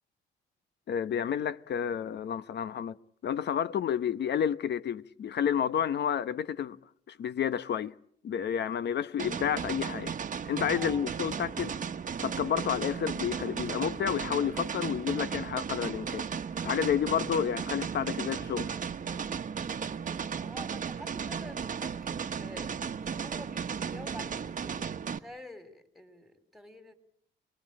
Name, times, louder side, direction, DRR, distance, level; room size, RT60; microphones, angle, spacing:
voice 1, 0.9-3.0 3.2-6.8 7.1-7.9 8.2-10.1 10.4-11.7 12.2-16.3 16.6-18.7, left 8 dB, 60° left, 1.1 m, -30 dB
sound 1, 9.2-25.2, right 6 dB, 40° right, 1.2 m, -35 dB
voice 2, 10.7-11.1 20.4-22.8 23.1-26.9, left 1 dB, ahead, 3.6 m, -48 dB
28.0 x 21.0 x 8.9 m
cardioid pair, 90°, 20 cm